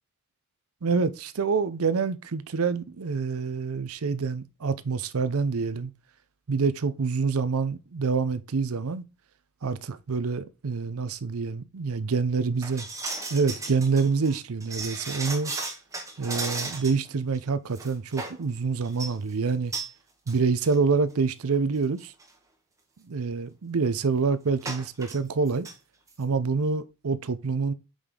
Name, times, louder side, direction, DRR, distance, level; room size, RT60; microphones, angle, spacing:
voice 1, 0.8-5.9 6.5-9.0 9.6-12.9 13.3-15.5 16.2-19.7 20.3-22.1 23.0-25.7 26.2-27.7, right 4 dB, 80° right, 0.6 m, -26 dB
sound 1, 12.6-17.1 17.3-17.4 17.7-18.4 18.8-19.1 19.7-19.9 20.3-20.4 20.6-20.8 21.5-21.6 22.0-22.2 24.6-25.2 25.5-25.7 26.1-26.2, right 3 dB, 15° right, 1.0 m, -35 dB
6.3 x 5.2 x 3.7 m
head